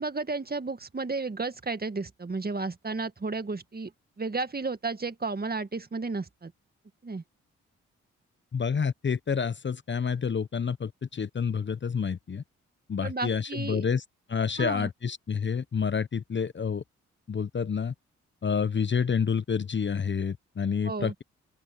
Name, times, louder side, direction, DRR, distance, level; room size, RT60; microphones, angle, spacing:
voice 1, 0.0-3.9 4.2-6.5 7.0-7.2 13.0-13.9 14.6-14.9 20.8-21.1, right 3 dB, 30° right, 2.0 m, -33 dB
voice 2, 8.5-12.4 12.9-14.0 14.3-16.8 17.3-17.9 18.4-21.2, left 6 dB, 35° left, 0.9 m, -28 dB
open air
supercardioid pair, 45°, 31 cm